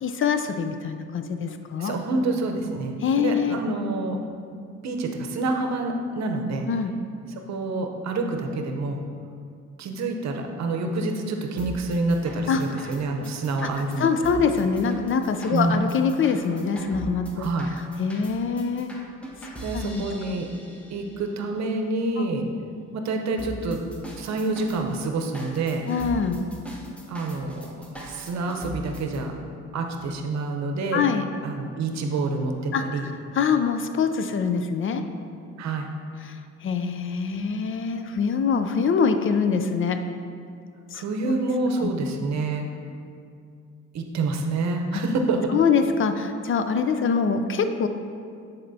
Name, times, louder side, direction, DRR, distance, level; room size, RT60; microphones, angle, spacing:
voice 1, 0.0-1.9 3.0-3.6 6.7-6.9 12.5-12.9 13.6-13.7 14.0-17.5 18.0-18.9 19.7-20.0 22.2-22.3 25.9-26.4 30.9-31.3 32.7-35.0 36.2-40.0 40.9-41.0 41.8-41.9 44.9-45.0 45.5-47.9, left 5 dB, 45° left, 8 dB, 0.4 m, -24 dB
voice 2, 1.8-4.2 4.5-6.7 7.5-9.0 9.8-14.1 15.5-15.8 17.4-17.7 19.6-20.5 20.9-22.5 22.9-23.8 24.2-25.9 27.1-29.3 29.7-31.0 31.4-33.1 35.6-35.9 40.9-42.7 43.9-45.5, right 2 dB, 65° right, 4 dB, 0.8 m, -27 dB
sound 1, 11.6-21.2 23.4-29.2, right 1 dB, 5° left, 0.8 m, -41 dB
9.8 x 4.2 x 2.7 m, 2.3 s
cardioid pair, 90°, 30 cm